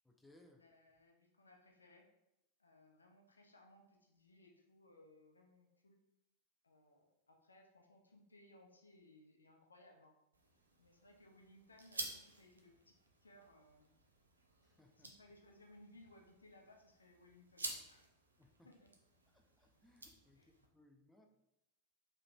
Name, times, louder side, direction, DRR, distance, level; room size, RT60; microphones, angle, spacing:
voice 1, 0.0-0.7 14.6-15.2 18.4-18.7 19.3-21.3, left 1 dB, 5° left, 3 dB, 0.4 m, -67 dB
voice 2, 0.5-2.1 2.6-6.0 6.6-10.2 10.8-12.9 13.2-13.9 15.0-18.1 18.6-18.9 20.3-20.5, left 1 dB, 75° left, 1 dB, 0.7 m, -64 dB
sound 1, 10.3-20.7, right 2 dB, 75° right, 0.6 m, -52 dB
4.8 x 3.3 x 2.6 m, 0.87 s
figure-of-eight pair, 90°, 0 cm